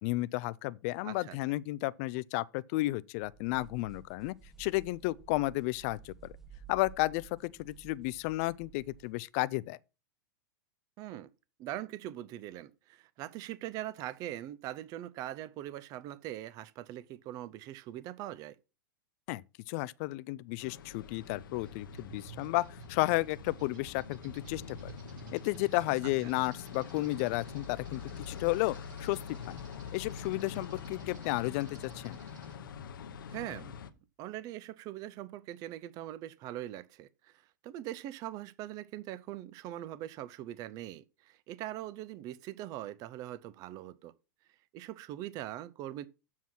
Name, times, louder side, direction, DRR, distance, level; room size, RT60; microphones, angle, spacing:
voice 1, 0.0-6.3 6.7-9.8 19.3-24.9 25.3-28.0 28.3-29.6 29.9-32.2, left 20 dB, 45° left, 0.4 m, -33 dB
voice 2, 1.0-1.4 11.0-11.3 11.6-18.6 33.3-33.7 34.2-44.1 44.7-46.1, right 13 dB, 35° right, 0.5 m, -42 dB
sound 1, 3.2-9.2, right 7 dB, 5° right, 0.8 m, -54 dB
sound 2, 20.6-33.9, left 7 dB, 80° left, 1.0 m, -45 dB
sound 3, 20.7-32.6, right 5 dB, 65° right, 3.0 m, -53 dB
7.4 x 5.9 x 5.8 m
hypercardioid pair, 135°, 11 cm